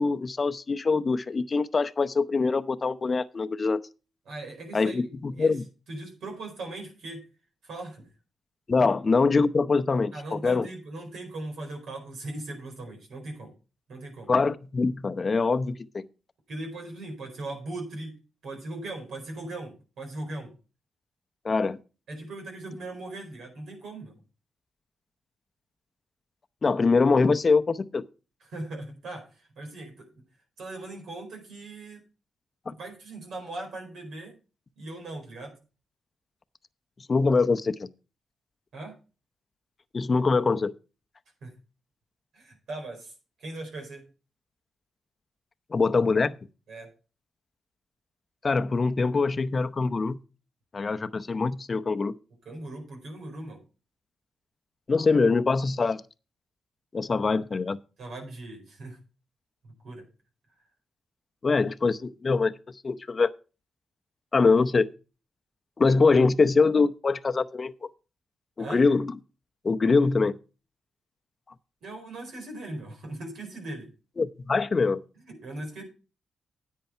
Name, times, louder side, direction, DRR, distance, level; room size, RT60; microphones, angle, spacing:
voice 1, 0.0-3.8 4.7-5.6 8.7-10.7 14.3-16.0 21.4-21.8 26.6-28.0 32.7-32.8 37.1-37.9 39.9-40.7 45.7-46.4 48.4-50.2 50.7-52.1 54.9-56.0 56.9-57.8 61.4-63.3 64.3-64.9 65.8-67.7 68.6-69.1 69.6-70.4 74.2-75.0, left 4 dB, 40° left, 0.7 m, -23 dB
voice 2, 4.3-5.6 5.9-7.2 7.6-8.1 10.1-13.5 13.9-14.3 16.5-20.5 22.1-24.1 28.4-30.1 30.6-32.0 32.7-34.4 34.8-35.6 38.7-39.0 41.4-41.6 42.3-43.1 43.4-44.1 46.7-46.9 52.4-53.6 58.0-59.0 59.6-60.1 68.6-68.8 71.8-73.9 75.3-75.8, right 2 dB, 75° right, 4.5 m, -39 dB
10.5 x 8.5 x 4.4 m
supercardioid pair, 60°, 0 cm